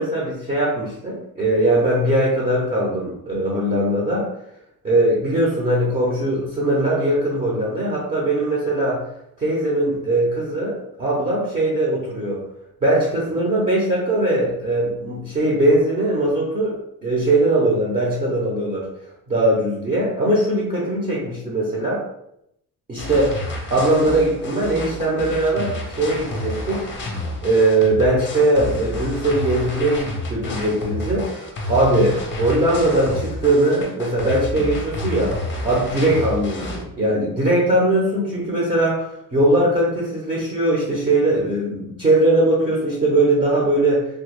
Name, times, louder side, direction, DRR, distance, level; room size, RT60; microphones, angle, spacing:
voice 1, 0.0-4.3 4.8-9.0 9.4-12.4 12.8-18.9 19.3-22.0 22.9-26.9 27.4-31.3 31.7-35.3 35.6-44.1, right 1 dB, 25° right, -4 dB, 0.5 m, -20 dB
sound 1, 23.0-36.8, left 1 dB, 35° left, 0.6 m, -30 dB
3.4 x 2.2 x 3.0 m, 0.78 s
cardioid pair, 175°, 35 cm